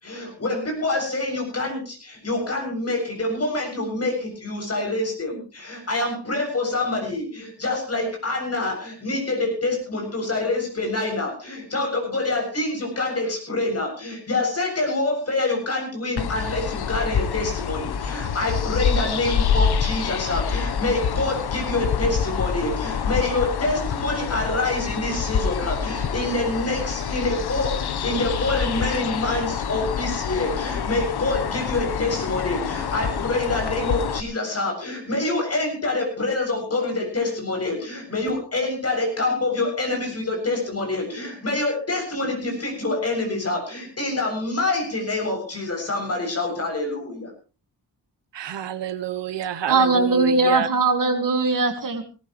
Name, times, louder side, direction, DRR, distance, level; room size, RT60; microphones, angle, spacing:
voice 1, 0.0-47.3, left 2 dB, 35° left, 7.5 m, -26 dB
sound 1, 16.2-34.2, left 7 dB, 65° left, 1.1 m, -26 dB
voice 2, 48.3-50.7, right 10 dB, 85° right, 1.0 m, -28 dB
voice 3, 49.7-52.0, right 3 dB, 50° right, 2.1 m, -20 dB
19.0 x 18.0 x 3.2 m
wide cardioid pair, 150°, 42 cm